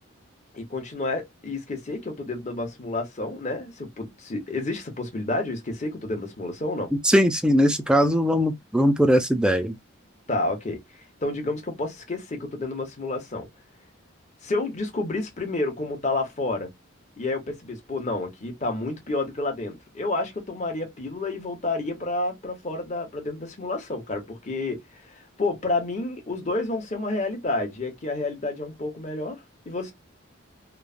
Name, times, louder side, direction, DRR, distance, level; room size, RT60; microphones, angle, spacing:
voice 1, 0.5-6.9 10.3-10.8 11.2-13.5 14.4-16.7 17.2-29.9, left 2 dB, 35° left, 0.9 m, -30 dB
voice 2, 6.9-9.8, equal, 5° right, 0.3 m, -20 dB
3.1 x 2.1 x 2.4 m
head